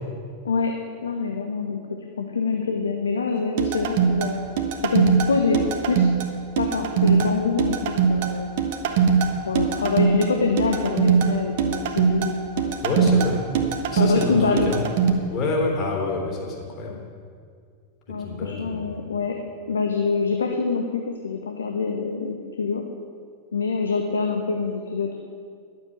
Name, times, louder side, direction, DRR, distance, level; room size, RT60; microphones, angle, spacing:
voice 1, 1.0-4.4 4.8-5.6 5.9-6.1 6.6-8.5 9.4-12.8 13.9-14.7 18.1-19.4 19.7-22.8 23.5-25.2, left 4 dB, 70° left, 3 dB, 1.0 m, -25 dB
sound 1, 3.6-15.1, right 6 dB, 50° right, 1.3 m, -22 dB
voice 2, 12.8-13.5 13.9-14.8 15.3-17.0 18.1-19.1, left 3 dB, 35° left, -1 dB, 3.5 m, -27 dB
11.5 x 7.7 x 8.7 m, 2.1 s
figure-of-eight pair, 90°, 0 cm